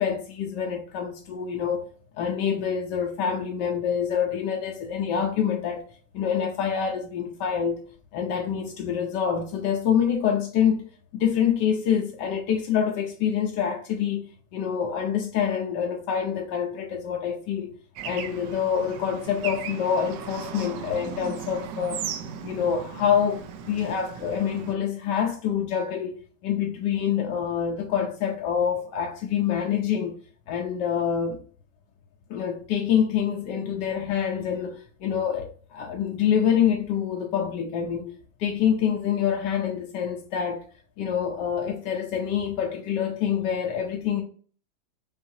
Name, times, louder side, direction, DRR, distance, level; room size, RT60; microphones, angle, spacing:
voice 1, 0.0-1.9 2.2-5.8 6.1-7.8 8.1-10.8 11.1-17.8 18.0-22.0 22.4-30.2 30.5-31.4 32.3-38.1 38.4-40.6 41.0-44.2, left 8 dB, 85° left, 1.3 m, -26 dB
Bird / Traffic noise roadway noise, 18.0-24.7, right 7 dB, 90° right, 1.2 m, -37 dB
5.6 x 2.6 x 2.7 m
omnidirectional pair, 1.8 m